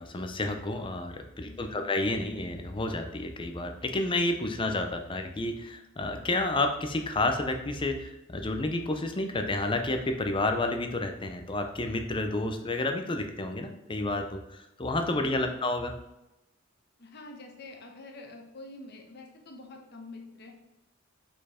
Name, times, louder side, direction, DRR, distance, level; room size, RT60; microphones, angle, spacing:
voice 1, 0.0-15.9, left 2 dB, 25° left, 6 dB, 0.6 m, -30 dB
voice 2, 1.4-1.9 15.1-15.6 17.0-20.5, left 2 dB, 50° left, 2 dB, 1.0 m, -47 dB
5.2 x 4.4 x 4.2 m, 0.92 s
head